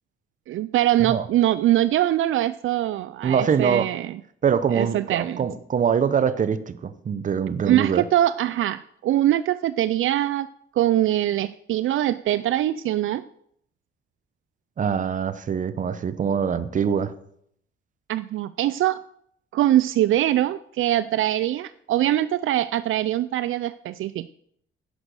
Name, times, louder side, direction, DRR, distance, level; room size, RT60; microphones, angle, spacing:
voice 1, 0.5-4.2 4.7-5.4 7.7-10.5 10.7-13.2 18.1-19.0 19.5-24.3, right 13 dB, 70° right, 15 dB, 0.4 m, -23 dB
voice 2, 3.2-3.9 4.4-8.0 14.8-17.1, right 7 dB, 35° right, 14 dB, 0.8 m, -23 dB
10.5 x 10.0 x 6.4 m, 0.69 s
wide cardioid pair, 170°, 21 cm